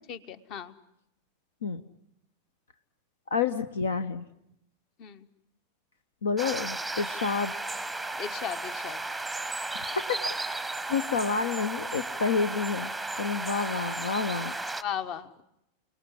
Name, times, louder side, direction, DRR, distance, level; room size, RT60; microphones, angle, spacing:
voice 1, 0.1-0.7 5.0-5.3 8.2-9.0 14.8-15.4, left 8 dB, 40° left, 13 dB, 1.3 m, -36 dB
voice 2, 3.3-4.2 6.2-7.7 9.7-10.6 10.9-12.9 13.2-14.5, left 5 dB, 65° left, 12 dB, 1.0 m, -29 dB
sound 1, 6.4-14.8, right 2 dB, ahead, 0.9 m, -34 dB
29.5 x 19.5 x 10.0 m, 0.83 s
figure-of-eight pair, 90°, 0 cm